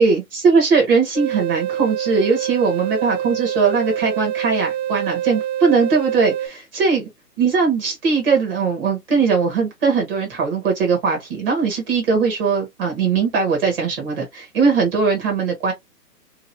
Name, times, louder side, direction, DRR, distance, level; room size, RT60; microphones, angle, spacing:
voice 1, 0.0-7.1 7.4-15.7, right 5 dB, 35° right, 1.2 m, -19 dB
sound 1, 1.2-6.5, right 11 dB, 60° right, 0.9 m, -26 dB
2.9 x 2.6 x 2.6 m
figure-of-eight pair, 140°, 49 cm